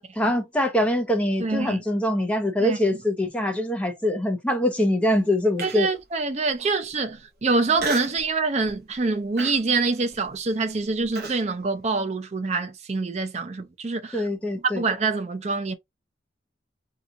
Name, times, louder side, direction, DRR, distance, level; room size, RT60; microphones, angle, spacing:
voice 1, 0.0-5.9 14.1-14.8, left 1 dB, 5° left, 0.7 m, -24 dB
voice 2, 1.4-1.8 2.6-2.8 5.6-14.3 14.7-15.7, right 3 dB, 35° right, 0.5 m, -25 dB
Human voice, 5.6-6.0 6.6-6.7 7.8-8.2 8.7-9.0 9.4-11.4, right 4 dB, 50° right, 0.9 m, -33 dB
2.9 x 2.4 x 3.7 m
head